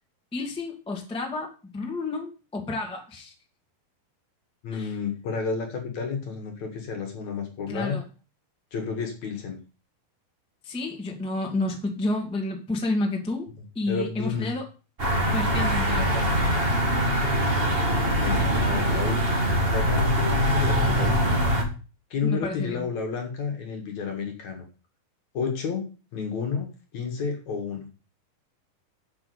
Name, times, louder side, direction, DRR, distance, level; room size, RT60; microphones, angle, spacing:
voice 1, 0.3-3.3 4.7-4.9 7.7-8.0 10.6-13.4 13.7-14.6 15.3-16.3 22.2-22.9, left 2 dB, ahead, 0 dB, 1.4 m, -30 dB
voice 2, 4.6-8.0 8.7-9.6 13.9-14.5 18.1-21.4 22.1-24.7 25.3-25.8 26.1-27.9, left 5 dB, 55° left, 3 dB, 2.7 m, -31 dB
sound 1, 15.0-21.6, equal, 25° right, 1.2 m, -23 dB
7.8 x 6.1 x 7.8 m, 0.35 s
omnidirectional pair, 4.3 m